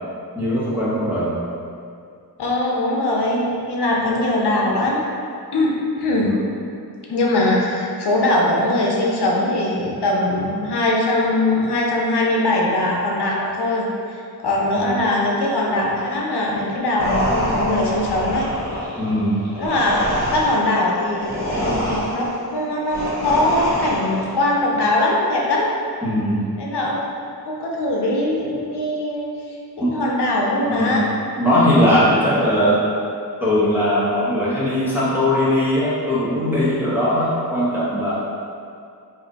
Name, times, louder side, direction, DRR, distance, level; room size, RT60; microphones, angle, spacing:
voice 1, 0.3-1.3 6.2-6.4 14.7-15.0 19.0-19.5 26.0-26.5 29.8-29.9 30.6-31.1 31.4-32.8 33.4-38.1, equal, 5° right, -10 dB, 1.2 m, -19 dB
voice 2, 2.4-5.1 5.5-5.7 6.0-6.4 7.1-14.2 14.4-18.5 19.6-21.3 21.6-25.7 26.6-27.0 27.5-29.3 29.8-31.0, left 1 dB, 90° left, -3 dB, 0.6 m, -21 dB
sound 1, 17.0-24.4, equal, 45° left, 1.3 m, -26 dB
3.2 x 2.6 x 3.9 m, 2.4 s
wide cardioid pair, 65°, 39 cm